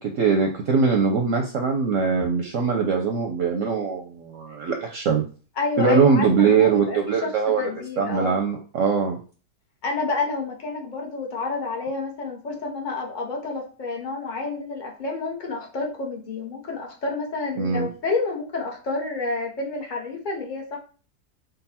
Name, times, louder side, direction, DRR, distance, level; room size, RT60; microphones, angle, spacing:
voice 1, 0.0-5.2 5.8-7.7 8.0-9.2 17.6-17.9, right 5 dB, 65° right, 2 dB, 0.8 m, -22 dB
voice 2, 5.6-8.4 9.8-20.8, left 3 dB, 45° left, 0 dB, 0.6 m, -29 dB
3.9 x 2.2 x 4.1 m, 0.38 s
omnidirectional pair, 1.8 m